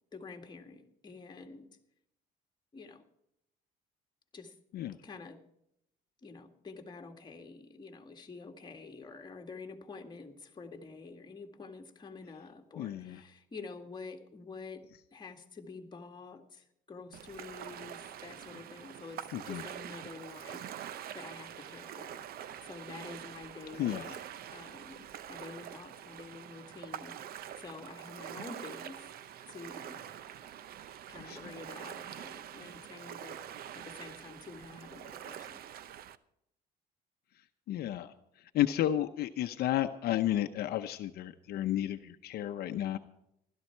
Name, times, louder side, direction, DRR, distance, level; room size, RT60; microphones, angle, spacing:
voice 1, 0.1-1.7 2.7-3.0 4.3-4.6 5.0-5.4 6.2-24.2 24.5-29.1 29.5-30.0 31.1-35.6, left 4 dB, 25° left, 3 dB, 2.0 m, -48 dB
voice 2, 12.8-13.2 19.3-19.6 23.8-24.1 31.2-31.4 37.7-38.1 38.5-43.0, left 12 dB, 65° left, 7 dB, 0.8 m, -32 dB
Ocean, 17.1-36.2, right 10 dB, 65° right, 0.8 m, -45 dB
16.0 x 13.0 x 4.5 m, 0.77 s
cardioid pair, 110°, 17 cm